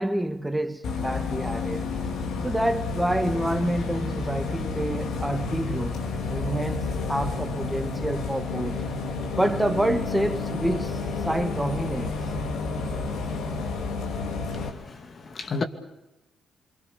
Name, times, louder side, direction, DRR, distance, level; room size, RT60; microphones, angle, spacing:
voice 1, 0.0-1.9 2.4-5.9 6.3-8.8 9.3-11.0 11.2-12.1, right 1 dB, 10° right, 1.6 m, -28 dB
Bus, 0.8-14.7, left 4 dB, 70° left, 3.0 m, -30 dB
voice 2, 14.5-15.6, left 4 dB, 45° left, 2.5 m, -33 dB
27.0 x 24.0 x 6.9 m
hypercardioid pair, 50°, 0 cm